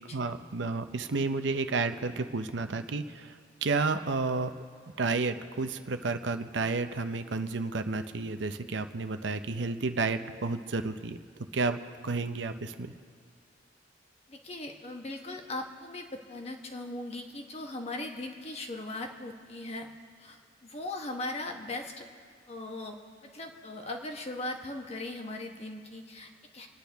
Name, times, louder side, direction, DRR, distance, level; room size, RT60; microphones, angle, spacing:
voice 1, 0.1-4.5 5.0-11.2 11.5-11.8 12.0-12.9, right 3 dB, 75° right, 8 dB, 0.7 m, -31 dB
voice 2, 14.3-19.9 20.2-22.1 22.5-23.0 23.3-26.7, left 2 dB, 35° left, 3 dB, 1.2 m, -39 dB
28.0 x 10.0 x 3.5 m, 2.1 s
head